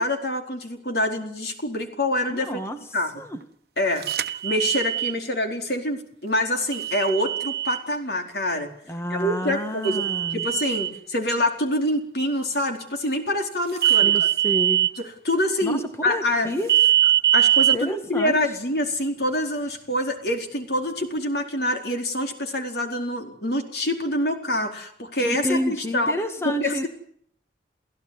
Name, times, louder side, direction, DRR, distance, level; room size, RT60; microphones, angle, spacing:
voice 1, 0.0-2.6 2.9-3.1 3.8-8.7 9.1-10.0 10.3-14.1 15.0-16.5 17.3-26.1 26.4-26.9, left 1 dB, 65° left, 4 dB, 4.5 m, -26 dB
voice 2, 2.3-2.8 3.2-3.4 8.9-10.5 14.0-14.9 15.6-16.7 17.7-18.5 25.2-26.9, equal, 15° left, 6 dB, 1.8 m, -29 dB
sound 1, 4.0-5.1 6.7-7.8 9.8-10.9 13.8-14.9 16.7-17.8, right 12 dB, 60° right, 1.3 m, -21 dB
29.5 x 16.5 x 9.7 m, 0.65 s
head